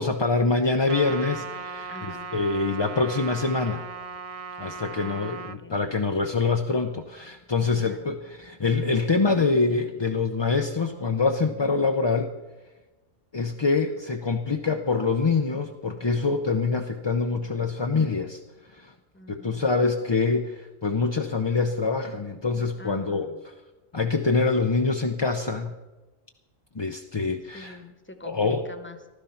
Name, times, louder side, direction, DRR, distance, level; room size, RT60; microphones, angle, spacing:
voice 1, 0.0-1.9 2.3-3.8 4.6-12.3 13.3-18.4 18.7-18.9 19.3-23.3 23.9-25.7 26.7-27.8 28.2-28.7, left 4 dB, 30° left, 4 dB, 0.5 m, -25 dB
Trumpet, 0.9-5.6, right 5 dB, 50° right, 0.4 m, -37 dB
voice 2, 1.9-2.5 4.9-5.9 7.8-8.0 19.1-19.7 22.8-23.4 27.5-29.1, left 2 dB, 10° left, 7 dB, 1.1 m, -45 dB
15.0 x 12.0 x 5.7 m, 1.1 s
omnidirectional pair, 1.3 m